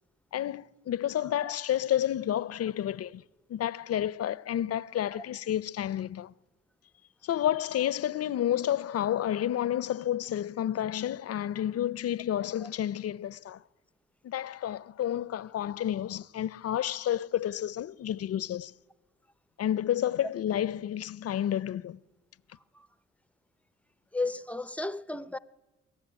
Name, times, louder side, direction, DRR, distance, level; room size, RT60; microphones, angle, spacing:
voice 1, 0.3-3.2 3.5-6.3 7.2-13.6 14.2-18.7 19.6-22.0, left 11 dB, 55° left, 0.6 m, -30 dB
voice 2, 24.1-25.4, left 2 dB, 5° left, 0.6 m, -34 dB
23.0 x 14.0 x 10.0 m
cardioid pair, 90°, 30 cm